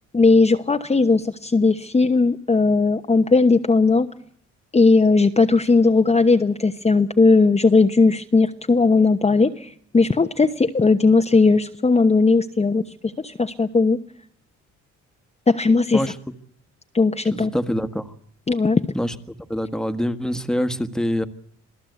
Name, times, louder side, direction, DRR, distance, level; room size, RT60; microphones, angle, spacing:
voice 1, 0.1-4.1 4.7-14.0 15.5-16.0 16.9-17.5 18.5-18.8, left 3 dB, 20° left, 6 dB, 1.1 m, -17 dB
voice 2, 17.3-18.1 18.9-19.1 19.5-21.3, equal, ahead, 10 dB, 1.6 m, -25 dB
27.0 x 17.0 x 8.1 m, 0.63 s
cardioid pair, 90°, 30 cm